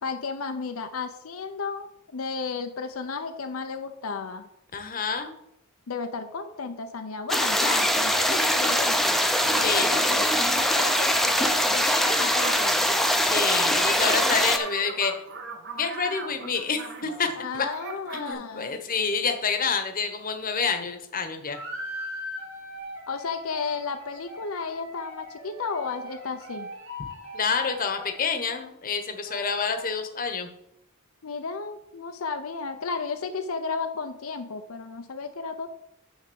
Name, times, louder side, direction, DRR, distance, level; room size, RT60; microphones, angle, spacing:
voice 1, 0.0-4.5 5.9-9.2 9.5-11.9 12.2-12.8 17.4-18.8 23.1-26.7 29.3-30.0 31.2-35.7, left 4 dB, 80° left, 7 dB, 0.7 m, -33 dB
voice 2, 4.7-5.3 9.6-10.0 13.2-15.1 15.8-17.3 17.5-17.7 18.1-21.6 27.3-30.5, left 5 dB, 45° left, 7 dB, 1.0 m, -28 dB
sound 1, 7.3-14.6, equal, ahead, 0.7 m, -22 dB
sound 2, 10.0-17.4 17.6-18.3, right 4 dB, 55° right, 1.3 m, -39 dB
sound 3, 21.5-28.5, left 1 dB, 75° right, 3.7 m, -40 dB
9.5 x 3.6 x 6.9 m, 0.78 s
head